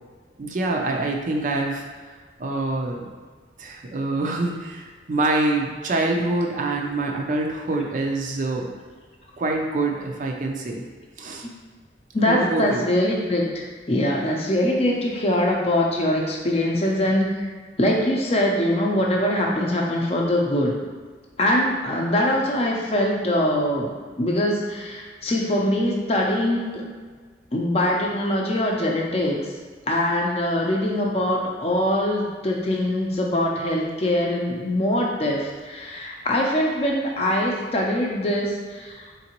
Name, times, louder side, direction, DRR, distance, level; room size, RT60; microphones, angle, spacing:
voice 1, 0.4-1.8 2.4-3.1 3.6-8.7 9.4-10.8 11.2-11.5 12.3-12.9, right 2 dB, 45° right, 1 dB, 0.4 m, -25 dB
voice 2, 12.1-17.4 17.8-20.7 21.4-23.9 24.2-26.8 27.5-29.4 29.9-39.0, left 1 dB, 35° left, -1 dB, 0.6 m, -23 dB
3.9 x 3.7 x 2.9 m, 1.5 s
head